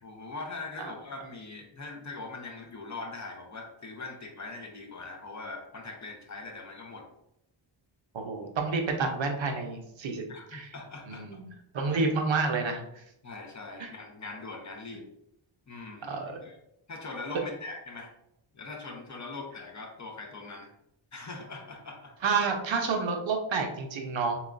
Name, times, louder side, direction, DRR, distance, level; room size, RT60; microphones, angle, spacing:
voice 1, 0.0-7.0 10.3-11.2 13.2-15.0 15.7-16.6 16.9-18.1 18.5-20.7 21.1-22.1, left 3 dB, 35° left, 1 dB, 0.7 m, -41 dB
voice 2, 8.1-10.2 10.5-10.7 11.1-11.5 11.7-12.8 13.8-13.9 16.1-16.4 22.2-24.4, right 4 dB, 65° right, 3 dB, 0.8 m, -29 dB
7.0 x 2.4 x 2.5 m, 0.81 s
wide cardioid pair, 155°, 49 cm